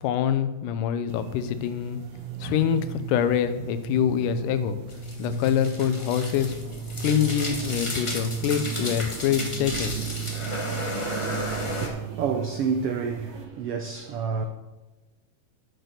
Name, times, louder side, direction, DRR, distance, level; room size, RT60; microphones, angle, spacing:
voice 1, 0.0-2.0 2.4-4.8 5.2-6.5 7.0-10.0, left 9 dB, 85° left, 2.3 m, -25 dB
sound 1, 1.1-13.5, right 7 dB, 70° right, 1.9 m, -36 dB
sound 2, 4.9-11.9, left 1 dB, 50° left, 0.3 m, -33 dB
voice 2, 11.5-14.5, right 6 dB, 90° right, 1.3 m, -29 dB
9.2 x 6.3 x 6.6 m
omnidirectional pair, 3.6 m